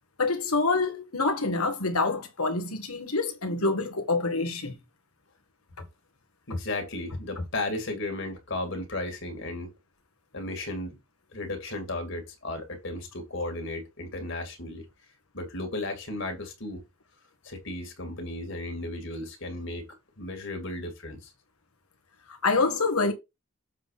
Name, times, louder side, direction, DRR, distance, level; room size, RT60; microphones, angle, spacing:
voice 1, 0.2-4.8 5.8-5.9 6.5-6.6 7.4-7.5 22.3-23.1, left 3 dB, 85° left, 1.8 m, -26 dB
voice 2, 6.5-9.7 10.3-11.0 11.3-14.9 15.3-16.8 17.4-19.9 20.2-21.3, left 2 dB, 55° left, 2.5 m, -34 dB
7.5 x 3.9 x 5.6 m
head